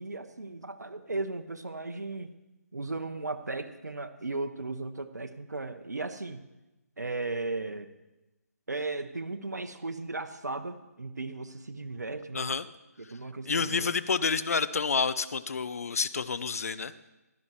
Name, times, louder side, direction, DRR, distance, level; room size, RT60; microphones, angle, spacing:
voice 1, 0.0-2.3 2.7-6.4 7.0-7.9 8.7-12.5 13.1-13.9, right 3 dB, 90° right, 8 dB, 0.8 m, -36 dB
voice 2, 12.3-12.7 13.0-13.1 13.5-16.9, left 5 dB, 60° left, 15 dB, 0.6 m, -29 dB
15.5 x 12.0 x 3.1 m, 1.0 s
figure-of-eight pair, 150°, 9 cm